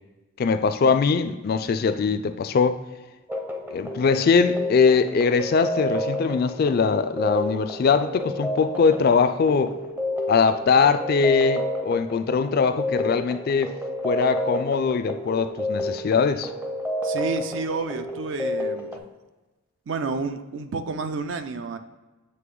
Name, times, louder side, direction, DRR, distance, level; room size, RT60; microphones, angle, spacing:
voice 1, 0.4-2.8 3.7-9.7 10.3-13.7 14.0-16.5, left 5 dB, 45° left, 10 dB, 0.3 m, -21 dB
sound 1, 3.3-19.0, equal, 10° right, 0.5 m, -30 dB
voice 2, 17.0-18.9 19.9-21.8, right 4 dB, 60° right, 9 dB, 0.4 m, -30 dB
7.7 x 3.3 x 3.7 m, 1.2 s
head